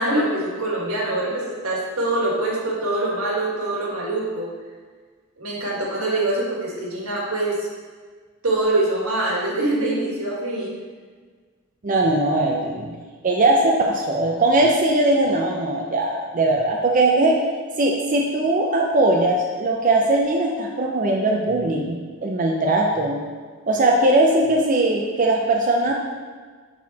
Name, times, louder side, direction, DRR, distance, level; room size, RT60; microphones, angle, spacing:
voice 1, 0.0-4.5 5.4-7.7 8.4-10.8, right 2 dB, 90° right, -4 dB, 1.8 m, -24 dB
voice 2, 11.8-12.9 13.2-17.4 17.8-23.2 23.7-25.9, right 2 dB, 40° right, -1 dB, 0.5 m, -20 dB
6.4 x 4.4 x 4.2 m, 1.5 s
head